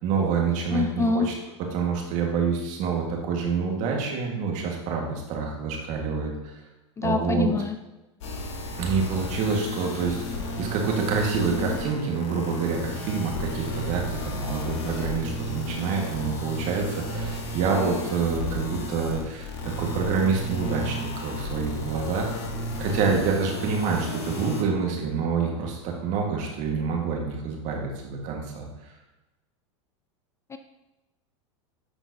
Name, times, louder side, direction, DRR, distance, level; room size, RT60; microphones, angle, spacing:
voice 1, 0.0-1.3 1.7-6.6 7.0-7.5 8.8-19.5 19.8-22.3 22.8-28.7, right 5 dB, 50° right, 0 dB, 1.7 m, -27 dB
voice 2, 0.7-1.3 7.0-7.8 30.5-30.6, left 4 dB, 20° left, 8 dB, 0.4 m, -25 dB
sound 1, 8.2-24.6, left 1 dB, 75° left, 1.4 m, -33 dB
10.0 x 4.5 x 2.8 m, 1.0 s
hypercardioid pair, 105°, 16 cm